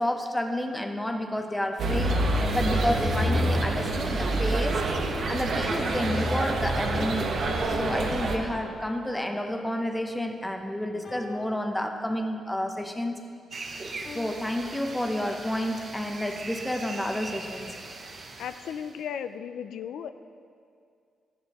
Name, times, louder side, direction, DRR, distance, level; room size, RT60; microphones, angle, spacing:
voice 1, 0.0-2.2 2.5-4.9 5.3-7.3 7.7-13.2 14.0-17.8, left 1 dB, 5° left, 5 dB, 0.7 m, -30 dB
sound 1, 1.8-8.4, right 2 dB, 55° right, 1.1 m, -26 dB
sound 2, 8.0-9.8 11.0-12.5 14.0-14.3, left 2 dB, 40° left, 1.8 m, -46 dB
sound 3, 13.5-19.0, right 3 dB, 35° right, 0.8 m, -41 dB
voice 2, 18.4-20.1, left 8 dB, 80° left, 10 dB, 0.4 m, -35 dB
14.5 x 10.5 x 3.0 m, 2.3 s
cardioid pair, 145°, 0 cm